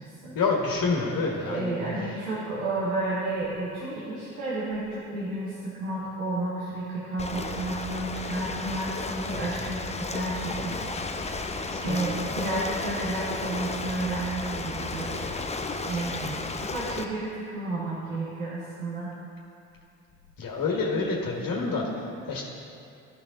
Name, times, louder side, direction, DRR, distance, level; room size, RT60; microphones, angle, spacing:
voice 1, 0.3-1.8 11.7-12.0 15.9-16.1 20.4-22.4, left 4 dB, 55° left, -2 dB, 1.7 m, -28 dB
voice 2, 1.5-10.9 11.8-15.2 15.8-19.1, right 2 dB, 85° right, -8 dB, 1.5 m, -31 dB
Ocean, 7.2-17.0, left 3 dB, 15° left, 0.7 m, -33 dB
13.5 x 5.5 x 3.9 m, 2.6 s
hypercardioid pair, 50°, 39 cm